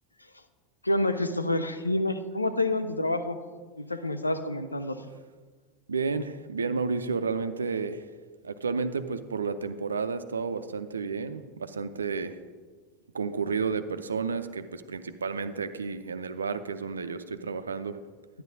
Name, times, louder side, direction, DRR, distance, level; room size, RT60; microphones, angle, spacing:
voice 1, 0.8-3.4 3.8-5.0, left 1 dB, 85° left, 10 dB, 0.4 m, -28 dB
voice 2, 5.9-8.1 8.4-12.4 13.1-18.0, right 5 dB, 75° right, 11 dB, 0.4 m, -31 dB
10.5 x 10.0 x 2.7 m, 1.5 s
figure-of-eight pair, 80°, 0 cm